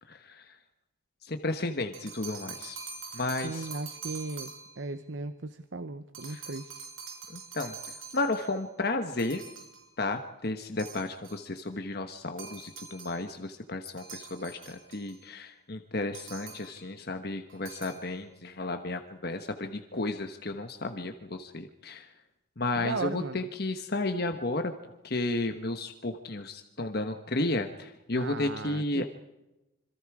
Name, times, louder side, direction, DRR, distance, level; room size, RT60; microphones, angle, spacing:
voice 1, 0.0-0.6 1.2-2.8 3.1-3.7 6.3-6.4 7.3-9.4 10.0-22.2 22.6-29.0, left 2 dB, 50° left, 6 dB, 1.3 m, -33 dB
sound 1, 1.8-4.9 6.1-8.6 9.2-9.9 10.8-11.5 12.4-13.2 14.0-15.2 16.1-16.9 17.5-18.1, right 5 dB, 80° right, 6.6 m, -44 dB
voice 2, 3.4-6.8 22.8-23.5 28.1-29.0, right 3 dB, 60° right, 11 dB, 0.9 m, -37 dB
27.0 x 25.5 x 4.9 m, 0.99 s
head